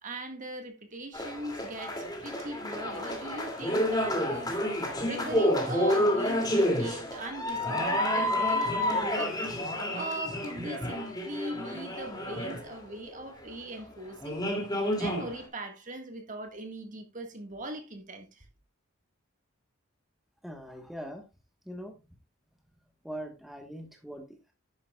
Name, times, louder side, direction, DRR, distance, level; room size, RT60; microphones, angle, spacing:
voice 1, 0.0-4.5 5.0-9.3 9.9-14.4 15.0-18.4, right 1 dB, 35° right, 1.7 m, -40 dB
sound 1, 1.1-13.1 13.8-13.9 14.2-15.4, left 1 dB, 20° left, 2.6 m, -29 dB
voice 2, 20.4-21.2 21.6-21.9 23.0-24.5, equal, ahead, 1.3 m, -41 dB
10.5 x 9.8 x 2.4 m
head